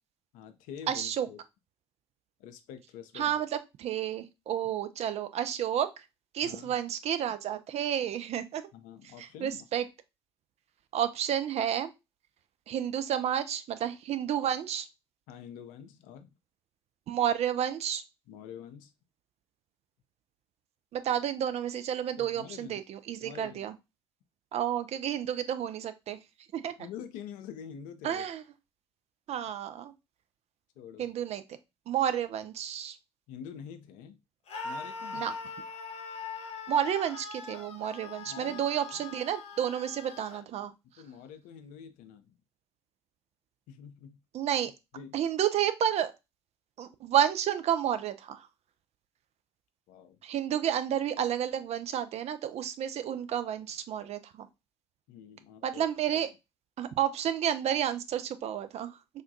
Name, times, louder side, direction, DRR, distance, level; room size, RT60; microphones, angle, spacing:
voice 1, 0.3-1.4 2.4-3.3 6.4-6.7 8.7-9.7 15.3-16.3 18.3-18.9 22.2-22.8 23.2-23.6 26.8-28.3 30.8-31.1 33.3-34.2 34.6-35.4 38.2-38.6 38.9-39.1 41.0-42.4 43.7-44.2 44.9-45.2 49.9-50.2 55.1-55.9 56.1-56.2, left 8 dB, 60° left, 9 dB, 0.5 m, -46 dB
voice 2, 0.9-1.3 3.1-6.0 6.3-8.7 9.2-9.8 10.9-11.9 12.7-14.9 17.1-18.0 20.9-23.7 24.5-26.2 26.5-26.7 28.0-28.4 29.3-29.9 31.0-31.4 31.9-33.0 35.1-35.3 36.7-40.7 44.3-44.7 45.1-46.1 46.8-48.5 50.2-54.5 55.6-56.3 56.8-59.0, right 10 dB, 45° right, 11 dB, 0.4 m, -31 dB
Screaming, 34.5-40.4, left 4 dB, 45° left, 0.9 m, -41 dB
3.5 x 2.2 x 2.6 m, 0.24 s
figure-of-eight pair, 50°, 15 cm